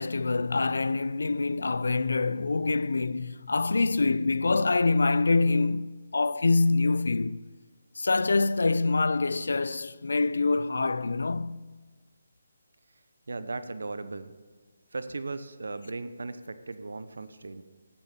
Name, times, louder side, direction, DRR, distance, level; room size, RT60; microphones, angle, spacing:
voice 1, 0.0-7.4 8.0-11.6, left 3 dB, 80° left, 0.6 m, -25 dB
voice 2, 13.3-14.3 14.9-17.6, right 3 dB, 85° right, 1.1 m, -37 dB
14.0 x 8.9 x 7.0 m
hypercardioid pair, 170°, 0 cm